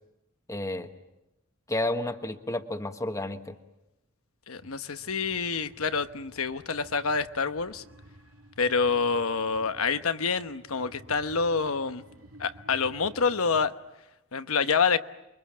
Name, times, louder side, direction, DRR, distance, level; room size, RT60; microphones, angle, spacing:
voice 1, 0.5-0.9 1.7-3.5, left 1 dB, 15° left, 1.3 m, -31 dB
voice 2, 4.5-7.8 8.6-12.0 12.4-13.7 14.3-15.0, left 5 dB, 85° left, 1.1 m, -27 dB
sound 1, 4.5-13.7, right 1 dB, 85° right, 2.4 m, -52 dB
29.0 x 23.0 x 7.4 m
head